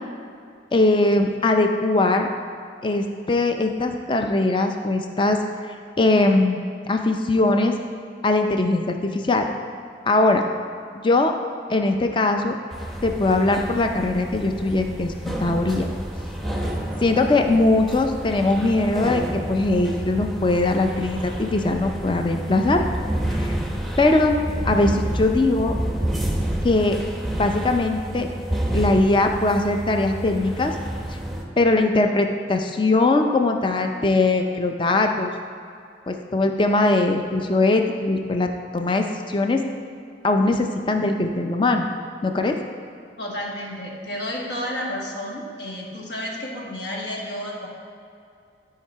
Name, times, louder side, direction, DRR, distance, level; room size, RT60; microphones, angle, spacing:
voice 1, 0.7-2.3 2.8-7.7 8.2-9.5 10.1-10.4 11.0-11.3 11.7-12.6 13.0-15.9 17.0-22.8 23.4-23.5 24.0-24.4 24.7-25.8 26.6-27.0 27.4-28.3 28.7-30.8 31.6-35.3 36.1-39.6 40.2-41.9 42.2-42.6, left 2 dB, 25° left, 4 dB, 0.4 m, -21 dB
sound 1, 12.7-31.4, right 1 dB, ahead, 0.8 m, -29 dB
voice 2, 43.2-47.7, equal, 70° left, -2 dB, 1.6 m, -31 dB
12.0 x 4.8 x 4.6 m, 2.4 s
head